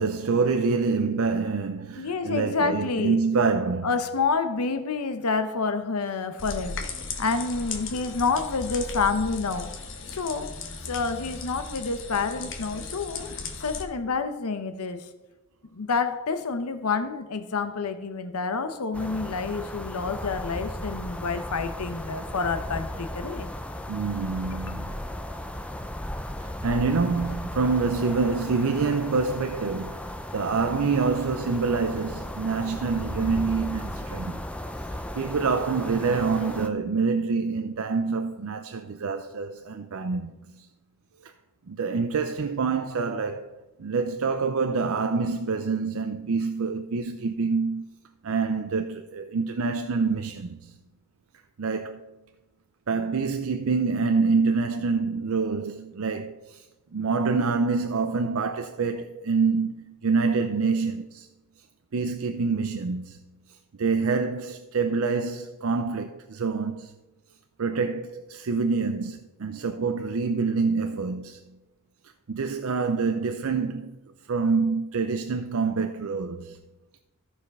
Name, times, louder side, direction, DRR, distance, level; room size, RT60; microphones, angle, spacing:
voice 1, 0.0-3.9 23.9-24.9 26.4-34.4 35.1-40.7 41.2-41.3 41.7-47.9 48.2-50.7 51.6-52.1 52.9-56.6 56.9-61.3 61.9-63.2 63.5-66.9 67.6-71.4 72.3-76.6, right 4 dB, 70° right, 0.5 m, -26 dB
voice 2, 2.0-3.2 3.8-6.9 7.2-10.5 10.8-15.1 15.7-23.5 24.7-24.8, left 4 dB, 85° left, 0.8 m, -28 dB
sound 1, 6.4-13.8, left 4 dB, 55° left, 1.3 m, -37 dB
sound 2, 18.9-36.7, left 1 dB, 5° left, 0.5 m, -36 dB
13.5 x 5.0 x 5.3 m
head